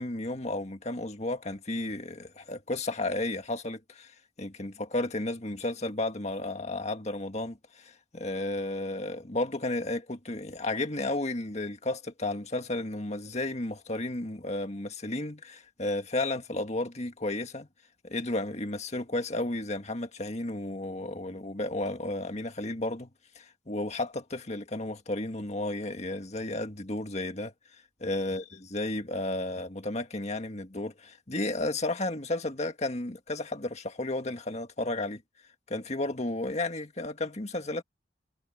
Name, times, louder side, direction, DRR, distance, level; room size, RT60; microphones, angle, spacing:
voice 1, 0.0-17.7 18.0-23.1 23.4-27.5 28.0-35.2 35.7-37.8, left 2 dB, 35° left, 1.9 m, -33 dB
head